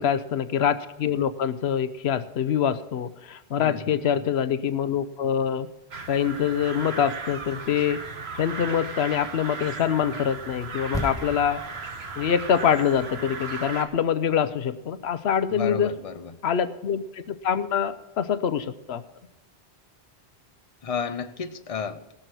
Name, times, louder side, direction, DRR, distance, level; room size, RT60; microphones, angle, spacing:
voice 1, 0.0-5.7 6.1-8.0 8.4-11.6 12.2-16.0 16.4-19.0, left 8 dB, 90° left, 13 dB, 1.0 m, -25 dB
voice 2, 3.6-4.2 15.5-16.4 20.8-22.1, left 6 dB, 40° left, 10 dB, 0.8 m, -33 dB
sound 1, 5.9-13.9, right 4 dB, 90° right, 1.5 m, -36 dB
sound 2, 10.9-14.9 15.1-15.3, equal, 5° left, 1.9 m, -37 dB
18.0 x 6.8 x 6.1 m, 0.95 s
omnidirectional pair, 1.0 m